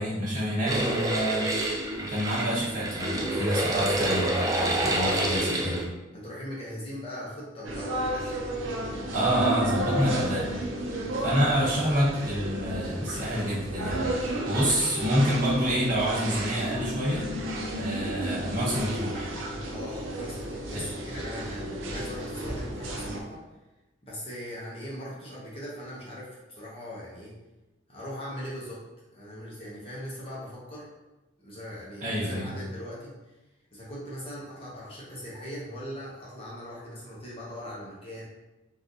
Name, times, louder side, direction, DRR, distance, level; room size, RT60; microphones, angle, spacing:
voice 1, 0.0-1.5 2.0-5.8 9.1-10.5 11.2-14.1 14.5-17.3 17.7-19.3 20.7-20.8 22.5-22.6 32.0-32.5, equal, 40° right, -7 dB, 1.1 m, -27 dB
sound 1, 0.7-5.8, right 1 dB, 15° right, 0.3 m, -28 dB
voice 2, 4.7-5.3 6.1-8.4 11.2-11.5 19.7-23.4 24.0-27.4 27.9-28.8 29.1-30.9 31.4-33.1 33.7-38.2, equal, 30° left, -6 dB, 0.7 m, -40 dB
sound 2, 7.6-23.2, right 1 dB, 70° right, 0.6 m, -33 dB
3.7 x 2.4 x 2.6 m, 1.0 s
head